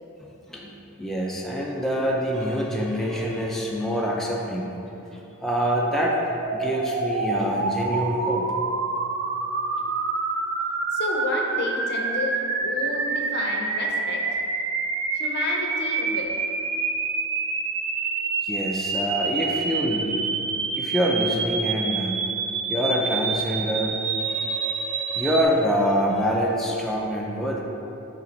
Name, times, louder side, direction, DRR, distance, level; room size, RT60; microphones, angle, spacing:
voice 1, 0.5-6.2 6.5-8.4 18.4-20.2 20.8-22.1 22.7-27.6, equal, ahead, -3 dB, 0.4 m, -26 dB
sound 1, 6.4-25.4, right 4 dB, 55° right, 0.5 m, -27 dB
voice 2, 10.9-14.4 15.1-16.4, left 2 dB, 50° left, 1 dB, 0.6 m, -30 dB
5.7 x 3.2 x 5.1 m, 2.9 s
head